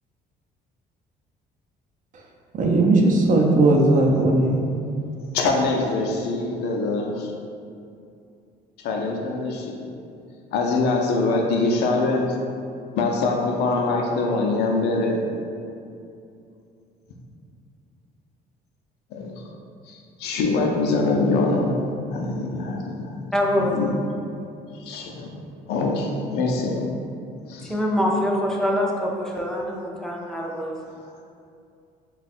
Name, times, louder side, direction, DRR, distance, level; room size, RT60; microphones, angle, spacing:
voice 1, 2.5-4.6, right 2 dB, 50° right, 0 dB, 0.6 m, -17 dB
voice 2, 5.3-7.3 8.8-9.7 10.5-12.4 12.9-15.2 19.1-19.3 19.9-21.8 22.1-23.3 23.7-23.9 24.8-25.3 25.7-26.9 27.5-27.7, left 3 dB, 80° left, 1 dB, 0.5 m, -24 dB
voice 3, 23.3-23.8 27.6-30.8, left 1 dB, 5° left, -2 dB, 0.5 m, -24 dB
3.4 x 2.3 x 4.1 m, 2.5 s
cardioid pair, 110°, 17 cm